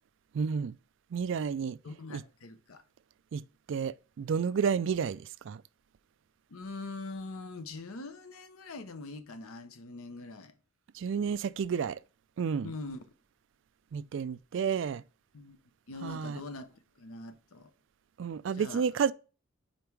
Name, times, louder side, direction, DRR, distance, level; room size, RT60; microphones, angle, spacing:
voice 1, 0.3-0.7 1.1-1.8 2.1-2.2 3.3-3.4 3.7-5.6 10.9-12.0 12.4-12.7 13.9-15.0 16.0-16.4 18.2-19.1, right 6 dB, 60° right, 0.3 m, -31 dB
voice 2, 1.8-2.8 6.5-10.5 12.6-13.1 15.3-15.6 15.9-17.7 18.5-18.8, left 3 dB, 85° left, 0.7 m, -43 dB
5.2 x 4.3 x 4.6 m
head